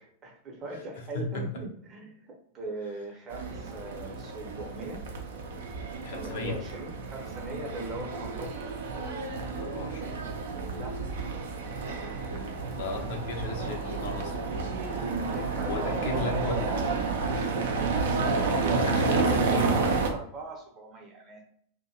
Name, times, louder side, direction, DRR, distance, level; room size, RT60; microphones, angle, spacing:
voice 1, 0.0-5.0 6.1-8.6 10.7-11.0 14.9-21.4, right 2 dB, 30° right, 1 dB, 0.7 m, -39 dB
voice 2, 1.1-1.5 6.0-6.6 9.5-10.2 12.7-14.6 15.7-16.8 18.8-19.8, left 2 dB, 55° left, 2 dB, 0.6 m, -35 dB
sound 1, 3.3-20.1, right 3 dB, 60° right, 0.5 m, -30 dB
2.5 x 2.1 x 2.8 m, 0.66 s
figure-of-eight pair, 90°, 0 cm